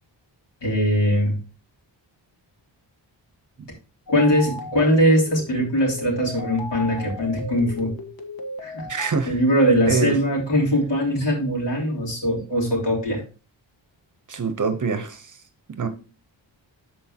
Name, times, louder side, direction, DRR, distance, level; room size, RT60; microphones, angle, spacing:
voice 1, 0.6-1.4 4.1-7.9 8.6-13.2, equal, 65° left, 3.4 m, -21 dB
sound 1, 4.1-9.1, left 1 dB, 50° left, 1.3 m, -36 dB
voice 2, 8.9-9.4 9.9-10.2 14.3-15.4 15.7-15.9, right 4 dB, 40° right, 0.8 m, -25 dB
13.0 x 4.5 x 2.8 m
wide cardioid pair, 150°, 45 cm